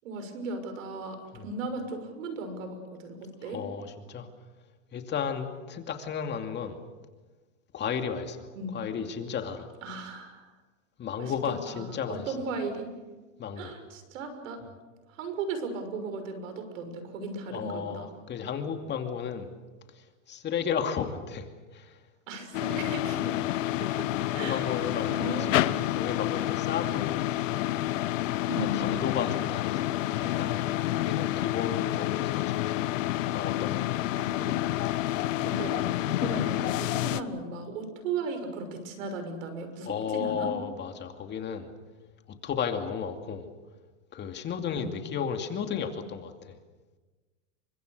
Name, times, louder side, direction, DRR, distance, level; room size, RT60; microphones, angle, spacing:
voice 1, 0.0-3.6 8.5-8.8 9.8-10.4 11.2-11.3 11.7-12.9 13.6-14.6 15.1-18.1 22.3-23.3 23.8-24.1 24.3-24.8 25.1-25.8 28.5-28.9 34.2-34.6 35.4-40.5 44.7-44.9, right 3 dB, 75° right, 8 dB, 6.3 m, -36 dB
voice 2, 3.4-4.3 4.9-6.8 7.7-8.5 8.7-9.7 11.0-12.3 13.4-13.7 17.5-19.5 20.3-21.5 21.7-22.0 24.3-25.5 25.9-27.3 28.6-32.8 33.3-34.0 39.8-41.7 42.4-43.5 44.1-46.6, left 7 dB, 25° left, 6 dB, 2.5 m, -33 dB
sound 1, 22.5-37.2, left 14 dB, 70° left, 1.3 m, -29 dB
29.5 x 24.5 x 6.7 m, 1.3 s
supercardioid pair, 130°, 39 cm